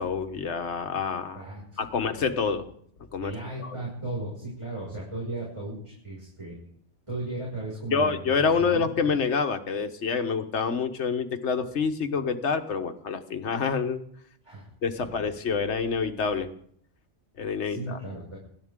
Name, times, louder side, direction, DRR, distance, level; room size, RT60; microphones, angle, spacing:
voice 1, 0.0-1.4 1.8-2.7 3.1-3.3 3.6-3.8 7.9-14.0 14.8-16.5 17.4-18.0, left 5 dB, 70° left, 7 dB, 1.5 m, -27 dB
voice 2, 1.3-2.2 3.2-6.5 7.1-8.1 8.6-9.2 14.4-14.6 15.0-15.2 17.6-18.4, right 2 dB, 25° right, -5 dB, 6.0 m, -36 dB
27.0 x 12.5 x 3.7 m, 0.64 s
omnidirectional pair, 1.2 m